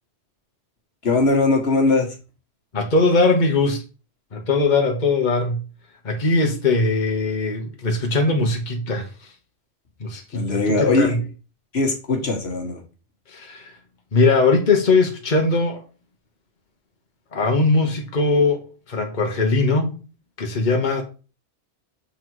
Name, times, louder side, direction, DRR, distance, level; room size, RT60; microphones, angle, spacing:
voice 1, 1.0-2.1 10.3-11.2 11.7-12.8, left 3 dB, 65° left, 1.7 m, -20 dB
voice 2, 2.7-3.8 4.3-5.6 6.0-9.1 10.0-11.2 13.3-13.7 14.1-15.8 17.3-19.9 20.4-21.0, left 3 dB, 45° left, 1.3 m, -20 dB
7.0 x 3.9 x 4.6 m
omnidirectional pair, 1.1 m